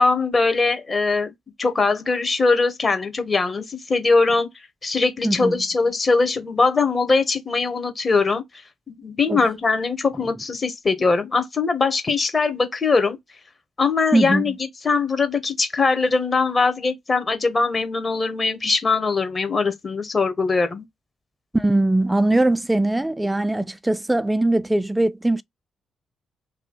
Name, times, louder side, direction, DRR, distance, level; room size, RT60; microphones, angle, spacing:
voice 1, 0.0-1.3 1.6-4.5 4.8-8.4 8.9-13.2 13.8-20.8, left 4 dB, 40° left, 1.1 m, -21 dB
voice 2, 5.2-5.6 9.3-9.4 14.1-14.5 21.5-25.4, right 2 dB, 10° right, 0.3 m, -21 dB
3.0 x 2.3 x 3.8 m
hypercardioid pair, 40°, 0 cm